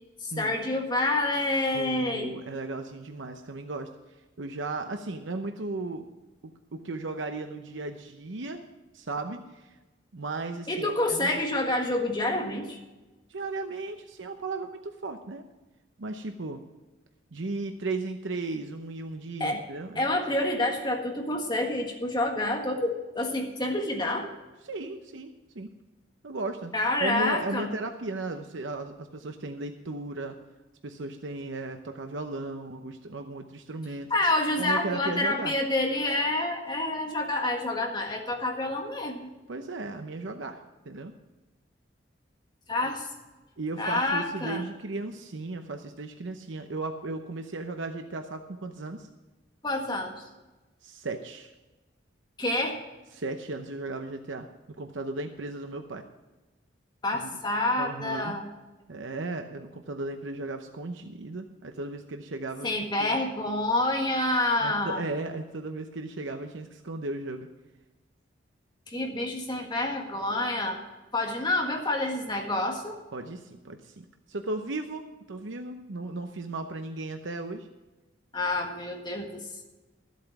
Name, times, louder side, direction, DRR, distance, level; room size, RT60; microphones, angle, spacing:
voice 1, 0.2-2.3 10.7-12.8 19.4-19.6 19.9-24.3 26.7-27.7 34.1-39.3 42.7-43.1 43.8-44.6 49.6-50.2 52.4-52.8 57.0-58.5 62.6-65.0 68.9-70.8 71.1-73.0 78.3-79.6, left 2 dB, 20° left, 2 dB, 1.6 m, -28 dB
voice 2, 1.7-3.9 4.4-6.1 6.7-8.6 8.9-9.8 10.1-11.4 13.3-15.4 16.0-16.6 17.3-20.1 24.6-25.7 26.2-26.7 27.0-30.4 30.8-34.1 34.6-35.5 39.5-41.1 42.8-42.9 43.6-49.1 50.8-51.5 53.1-56.0 57.1-57.3 57.8-58.4 58.9-62.7 63.0-63.2 64.6-67.5 73.1-77.7, right 2 dB, 75° right, 6 dB, 0.8 m, -36 dB
13.5 x 8.4 x 5.9 m, 1.1 s
head